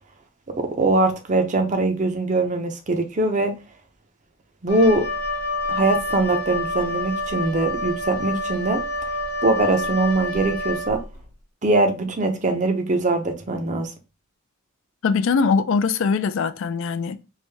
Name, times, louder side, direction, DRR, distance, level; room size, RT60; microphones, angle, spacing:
voice 1, 0.6-3.5 4.6-5.1 5.7-8.8 9.4-11.0 11.6-13.9, right 2 dB, 35° right, 0.6 m, -22 dB
Wind instrument woodwind instrument, 4.7-11.2, left 1 dB, 75° left, 1.0 m, -28 dB
voice 2, 15.0-17.2, left 5 dB, 60° left, 0.3 m, -22 dB
3.2 x 2.6 x 3.3 m
head